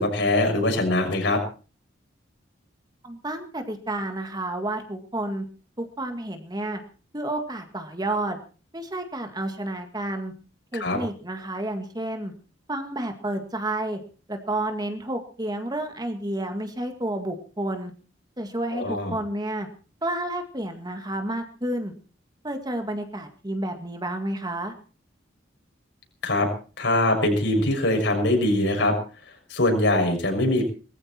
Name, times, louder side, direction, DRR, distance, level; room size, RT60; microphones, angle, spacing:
voice 1, 0.0-1.4 10.7-11.0 18.7-19.1 26.2-26.5 26.8-29.0 29.5-30.6, left 1 dB, 70° left, 3 dB, 6.4 m, -22 dB
voice 2, 3.0-5.5 5.8-6.8 7.1-8.4 8.7-10.3 10.7-12.3 12.7-14.0 14.3-17.9 18.4-19.7 20.0-21.9 22.4-24.7, right 1 dB, 20° right, 6 dB, 2.0 m, -30 dB
20.5 x 15.0 x 4.5 m, 0.38 s
head